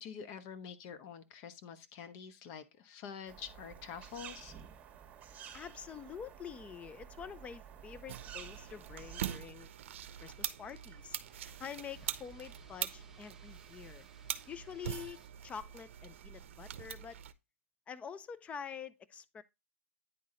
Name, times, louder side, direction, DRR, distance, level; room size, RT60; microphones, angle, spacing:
voice 1, 0.0-4.5, left 7 dB, 40° left, 1.1 m, -47 dB
sound 1, 3.3-9.4, right 8 dB, 20° right, 1.5 m, -51 dB
voice 2, 5.5-9.7 10.2-14.1 14.5-17.2 17.9-19.4, left 7 dB, 20° left, 0.5 m, -47 dB
sound 2, 8.1-17.3, right 10 dB, 65° right, 0.6 m, -43 dB
sound 3, 9.8-15.3, right 4 dB, 5° right, 1.1 m, -62 dB
9.5 x 4.0 x 3.8 m
hypercardioid pair, 125°, 7 cm